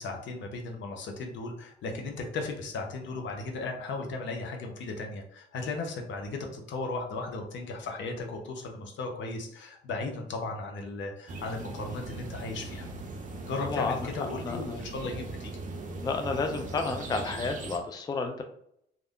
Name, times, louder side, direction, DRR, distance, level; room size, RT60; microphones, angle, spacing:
voice 1, 0.0-12.9 13.5-15.5, left 3 dB, 70° left, 2 dB, 0.7 m, -36 dB
sound 1, 11.3-17.8, right 2 dB, 40° right, 0.5 m, -39 dB
voice 2, 13.6-14.1 14.4-14.8 16.0-18.4, left 4 dB, 20° left, 5 dB, 0.3 m, -31 dB
2.4 x 2.1 x 3.5 m, 0.72 s
cardioid pair, 90°, 20 cm